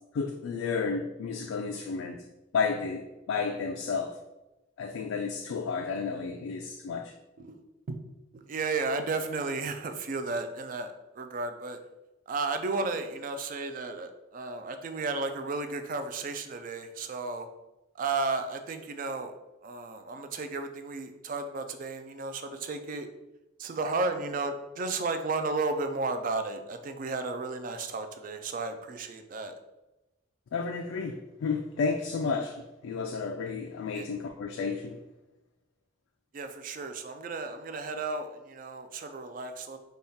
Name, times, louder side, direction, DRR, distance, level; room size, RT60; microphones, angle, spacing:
voice 1, 0.1-2.3 2.5-4.2 4.8-7.2 30.5-35.0, left 5 dB, 85° left, 0.3 m, -32 dB
voice 2, 8.3-11.8 12.3-17.5 18.0-19.3 19.6-23.1 23.6-29.5 33.9-34.1 36.3-39.8, right 3 dB, 45° right, 0.3 m, -33 dB
3.5 x 2.3 x 4.0 m
head